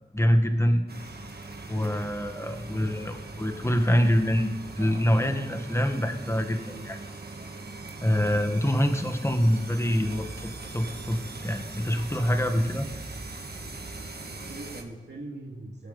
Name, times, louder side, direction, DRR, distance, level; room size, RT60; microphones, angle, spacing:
voice 1, 0.1-0.8 1.7-4.5 4.7-7.0 8.0-12.9, equal, 15° left, 5 dB, 1.4 m, -25 dB
sound 1, 0.9-14.8, right 3 dB, 65° right, 1.5 m, -41 dB
voice 2, 4.8-5.4 6.6-6.9 14.3-15.9, right 2 dB, 80° right, -2 dB, 2.2 m, -42 dB
21.5 x 8.6 x 4.0 m, 1.3 s
wide cardioid pair, 60°, 18 cm